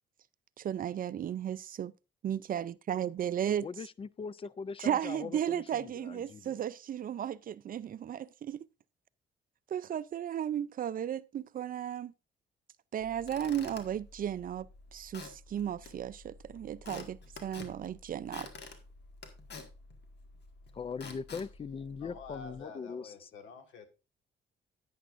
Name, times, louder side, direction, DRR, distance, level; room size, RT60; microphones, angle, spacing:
voice 1, 0.6-1.9 2.2-3.7 4.8-8.6 9.7-12.1 12.9-18.5, right 10 dB, 45° right, 0.4 m, -35 dB
voice 2, 3.6-6.6 20.7-23.3, left 5 dB, 30° left, 0.4 m, -41 dB
Squeak / Wood, 13.0-22.6, left 4 dB, 60° left, 1.8 m, -50 dB
voice 3, 22.0-23.9, left 4 dB, 80° left, 1.6 m, -48 dB
10.5 x 9.3 x 2.5 m
cardioid pair, 90°, 20 cm